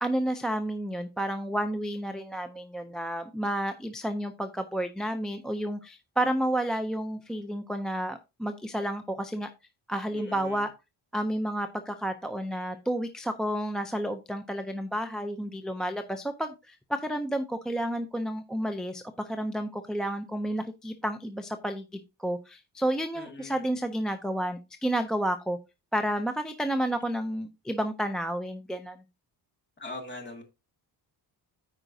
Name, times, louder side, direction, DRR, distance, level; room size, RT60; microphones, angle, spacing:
voice 1, 0.0-9.5 9.9-10.7 11.1-21.9 22.2-25.6 25.9-29.0, right 1 dB, ahead, 6 dB, 0.3 m, -31 dB
voice 2, 10.1-10.6 23.1-23.6 29.8-30.4, left 2 dB, 25° left, 3 dB, 2.1 m, -42 dB
14.0 x 4.9 x 2.6 m, 0.26 s
wide cardioid pair, 170°, 42 cm